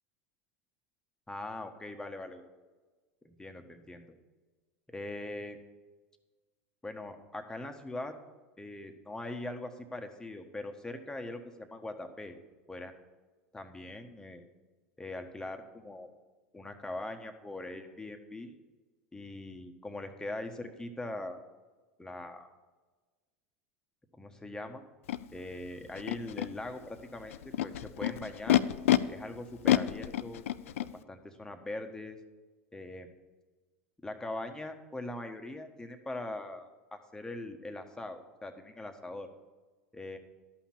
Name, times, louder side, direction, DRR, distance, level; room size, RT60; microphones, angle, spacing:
voice 1, 1.3-2.4 3.2-4.1 4.9-5.6 6.8-8.1 8.6-12.4 12.7-12.9 13.5-14.4 15.0-16.1 16.5-18.5 19.1-21.4 22.0-22.5 24.1-24.8 25.3-28.6 29.1-30.4 30.8-32.2 32.7-33.1 34.0-39.3 39.9-40.2, left 2 dB, 10° left, 5 dB, 1.3 m, -41 dB
Animal, 25.1-25.2 26.0-26.5 27.3-29.0 29.6-30.9, left 13 dB, 80° left, 0.4 m, -27 dB
12.5 x 5.8 x 7.3 m, 1.3 s
hypercardioid pair, 85°, 7 cm